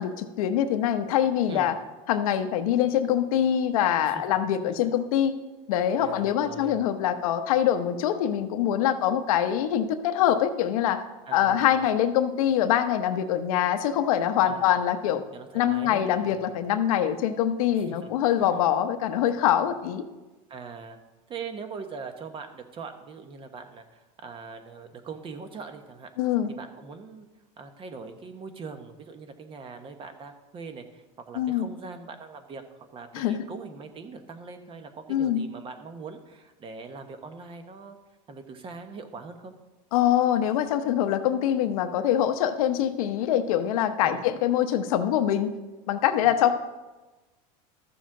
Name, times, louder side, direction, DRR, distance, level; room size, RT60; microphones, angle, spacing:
voice 1, 0.0-1.7 2.1-5.3 5.7-11.0 11.3-15.2 15.5-20.0 26.2-26.5 31.3-31.7 33.1-33.4 35.1-35.4 39.9-45.5 45.9-46.5, left 10 dB, 85° left, 9 dB, 0.8 m, -24 dB
voice 2, 4.0-4.4 4.6-4.8 6.0-6.8 11.3-11.8 14.5-14.7 15.3-16.4 17.7-18.1 18.4-18.6 20.5-21.0 21.3-26.1 26.5-27.3 27.6-32.6 32.9-38.0 38.3-39.5 44.0-44.2 46.2-46.4, right 5 dB, 30° right, 8 dB, 1.0 m, -42 dB
13.5 x 7.1 x 3.8 m, 1.2 s
supercardioid pair, 130°, 18 cm